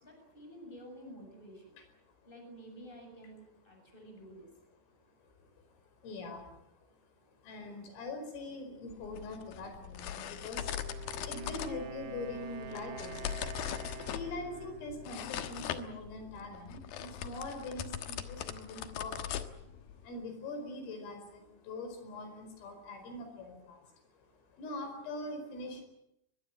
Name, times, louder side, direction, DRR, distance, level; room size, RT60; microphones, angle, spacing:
voice 1, 0.0-1.8 2.2-4.5, equal, 10° left, 4 dB, 6.8 m, -51 dB
voice 2, 5.2-5.7 6.0-6.6 7.3-13.6 14.1-25.8, left 2 dB, 85° left, 6 dB, 7.3 m, -43 dB
sound 1, 8.9-20.1, left 10 dB, 65° left, 2.5 m, -41 dB
Wind instrument woodwind instrument, 10.4-16.2, right 5 dB, 65° right, 2.4 m, -48 dB
23.0 x 22.0 x 9.1 m, 0.79 s
omnidirectional pair, 5.7 m